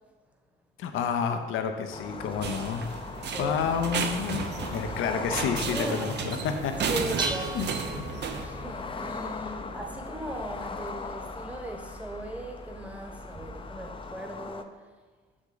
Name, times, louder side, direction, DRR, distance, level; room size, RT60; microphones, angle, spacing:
voice 1, 0.8-2.9 3.4-6.7 7.5-7.7 8.0-8.1, left 6 dB, 85° left, 7 dB, 0.7 m, -30 dB
sound 1, 1.9-14.6, left 4 dB, 25° left, 0.5 m, -39 dB
sound 2, 2.4-8.5, right 6 dB, 60° right, 0.7 m, -33 dB
voice 2, 3.3-3.6 4.8-4.9 5.7-6.1 6.9-7.7 8.4-14.8, equal, 5° right, 3 dB, 1.1 m, -38 dB
Dishes pots and pans, 6.7-14.1, right 2 dB, 25° right, 0.6 m, -41 dB
6.5 x 6.0 x 3.9 m, 1.4 s
cardioid pair, 90°, 20 cm